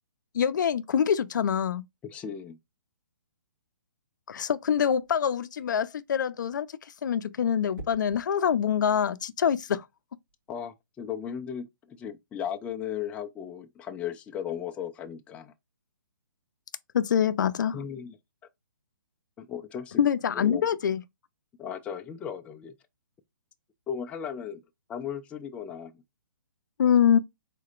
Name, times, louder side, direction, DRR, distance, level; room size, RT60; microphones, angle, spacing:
voice 1, 0.3-1.8 4.3-6.7 7.0-9.8 16.9-17.8 20.0-21.0 26.8-27.2, left 8 dB, 60° left, 0.6 m, -25 dB
voice 2, 2.0-2.6 10.5-15.5 17.7-18.2 19.4-20.0 20.3-20.7 21.6-22.7 23.9-24.6 24.9-25.9, left 8 dB, 10° left, 0.5 m, -36 dB
sound 1, 4.9-5.3 7.7-8.3 10.3-10.5, right 1 dB, 90° right, 2.6 m, -45 dB
4.8 x 4.1 x 2.4 m
hypercardioid pair, 150°, 11 cm